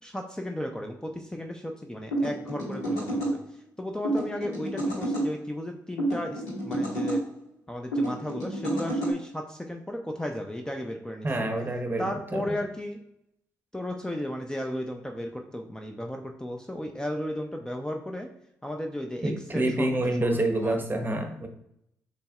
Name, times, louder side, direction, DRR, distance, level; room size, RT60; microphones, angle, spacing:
voice 1, 0.0-7.2 7.7-11.5 12.0-13.0 13.7-18.3 18.6-20.8, left 1 dB, 10° left, 3 dB, 0.6 m, -35 dB
sound 1, 2.1-3.3 4.0-5.3 6.0-7.2 7.9-9.1, right 1 dB, 85° left, 1.8 m, -29 dB
voice 2, 11.2-12.6 19.2-21.5, right 1 dB, 25° right, 5 dB, 0.9 m, -27 dB
6.7 x 3.2 x 2.4 m, 0.75 s
hypercardioid pair, 45°, 8 cm